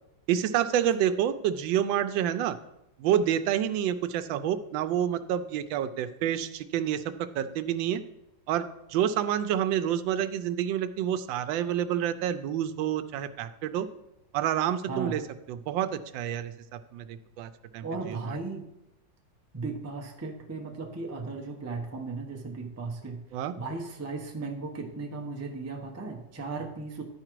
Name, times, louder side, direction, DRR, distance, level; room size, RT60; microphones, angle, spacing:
voice 1, 0.3-2.6 3.0-8.0 8.5-8.6 8.9-13.9 14.3-15.2 15.5-16.5 16.9-18.2 23.3-23.5, right 10 dB, 85° right, 12 dB, 1.3 m, -28 dB
voice 2, 14.9-15.2 17.8-18.6 19.5-23.2 23.6-27.0, right 3 dB, 15° right, 1 dB, 0.5 m, -36 dB
11.0 x 4.9 x 4.6 m, 0.88 s
omnidirectional pair, 2.0 m